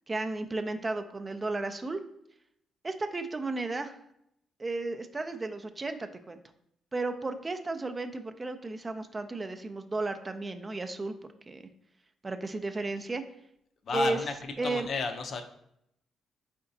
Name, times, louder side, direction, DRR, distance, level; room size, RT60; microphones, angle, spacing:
voice 1, 0.1-2.0 2.8-3.9 4.6-6.4 6.9-11.1 11.5-11.6 12.2-13.2 13.9-14.2 14.6-14.9, right 2 dB, 25° right, 8 dB, 0.3 m, -33 dB
voice 2, 13.8-15.4, left 3 dB, 55° left, 6 dB, 0.5 m, -32 dB
4.2 x 3.7 x 2.6 m, 0.76 s
cardioid pair, 90°, 0 cm